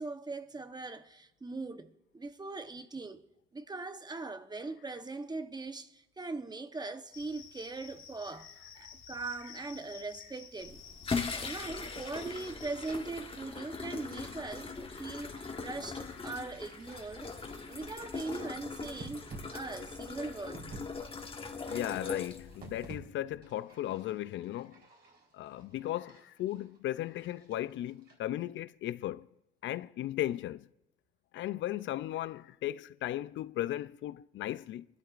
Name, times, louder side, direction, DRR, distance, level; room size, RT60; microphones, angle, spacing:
voice 1, 0.0-3.2 3.5-10.8 11.2-17.3 17.7-20.7, right 3 dB, 20° right, 0.9 m, -41 dB
Cricket, 7.1-12.9, left 7 dB, 85° left, 2.0 m, -52 dB
sound 1, 10.6-23.0, left 4 dB, 25° left, 1.2 m, -40 dB
sound 2, 12.4-20.8 21.1-23.0 23.3-28.1, right 3 dB, 60° right, 3.8 m, -54 dB
voice 2, 21.6-24.8 25.3-29.3 29.6-30.7 31.3-34.9, left 13 dB, 70° left, 0.4 m, -36 dB
24.5 x 12.5 x 2.5 m
cardioid pair, 90°, 20 cm